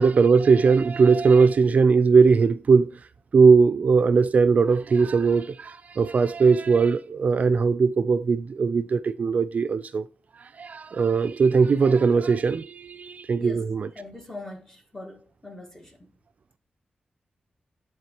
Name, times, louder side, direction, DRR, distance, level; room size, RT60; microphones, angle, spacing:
voice 1, 0.0-2.9 3.3-10.0 10.4-13.9, right 5 dB, 55° right, 0.3 m, -19 dB
voice 2, 13.4-13.7 13.9-16.1, left 2 dB, 15° left, 1.4 m, -41 dB
10.5 x 3.6 x 2.8 m
wide cardioid pair, 85°, 3 cm